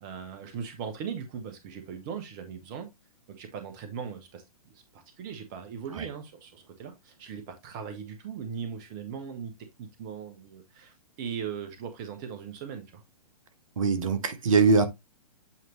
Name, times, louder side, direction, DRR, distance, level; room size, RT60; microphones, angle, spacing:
voice 1, 0.0-2.9 3.3-4.4 4.7-13.0, right 7 dB, 30° right, 1.1 m, -39 dB
voice 2, 13.8-14.9, right 4 dB, 60° right, 1.4 m, -22 dB
8.5 x 4.5 x 3.1 m
figure-of-eight pair, 120°, 19 cm